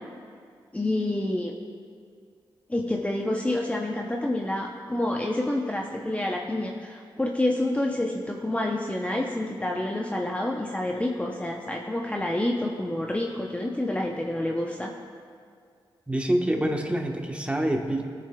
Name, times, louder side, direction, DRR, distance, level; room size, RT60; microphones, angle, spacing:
voice 1, 0.7-1.5 2.7-14.9, left 1 dB, 15° left, 0 dB, 0.6 m, -28 dB
voice 2, 16.1-18.1, right 1 dB, 15° right, 2 dB, 1.1 m, -26 dB
19.0 x 6.7 x 2.3 m, 2.2 s
cardioid pair, 65°, 9 cm